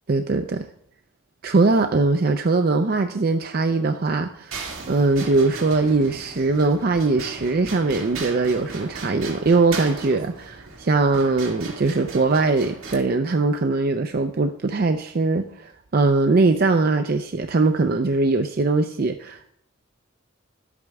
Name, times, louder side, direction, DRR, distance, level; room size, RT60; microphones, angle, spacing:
voice 1, 0.1-0.6 1.4-19.5, right 3 dB, 45° right, 7 dB, 0.5 m, -21 dB
sound 1, 4.5-13.0, right 4 dB, 85° right, 2.1 m, -37 dB
12.0 x 8.4 x 3.5 m, 0.71 s
head